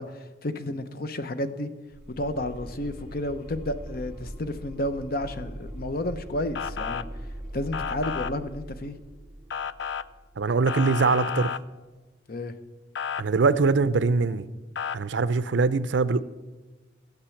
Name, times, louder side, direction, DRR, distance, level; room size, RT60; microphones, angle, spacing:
voice 1, 0.0-1.7 2.1-7.1 7.5-9.0 12.3-12.5, left 1 dB, 50° left, 0.8 m, -31 dB
Monster Growl with Reverb, 1.9-10.8, right 1 dB, 5° right, 2.0 m, -41 dB
Motor vehicle (road) / Siren, 6.6-7.0 7.7-8.3 9.5-10.0 10.7-11.6 13.0-13.2 14.8-15.0, left 7 dB, 70° left, 0.4 m, -31 dB
voice 2, 10.4-11.5 13.2-14.4 14.9-16.2, right 4 dB, 75° right, 0.5 m, -22 dB
13.5 x 8.2 x 7.1 m
head